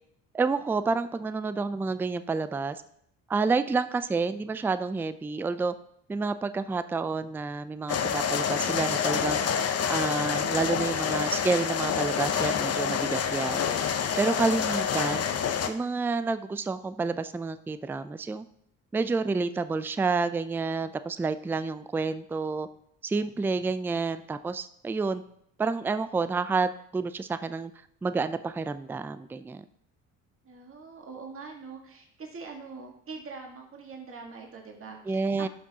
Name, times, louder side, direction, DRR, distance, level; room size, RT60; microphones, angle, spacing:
voice 1, 0.3-2.8 3.3-5.7 6.1-9.4 9.9-13.6 14.2-15.3 15.7-18.4 18.9-22.7 23.0-25.2 25.6-27.7 28.0-29.6 35.1-35.5, right 4 dB, 5° right, 12 dB, 0.3 m, -29 dB
sound 1, 7.9-15.7, left 7 dB, 40° left, 0.8 m, -27 dB
voice 2, 30.4-35.5, right 4 dB, 35° right, 1 dB, 1.7 m, -43 dB
12.0 x 5.9 x 2.8 m, 0.70 s
supercardioid pair, 70°, 39 cm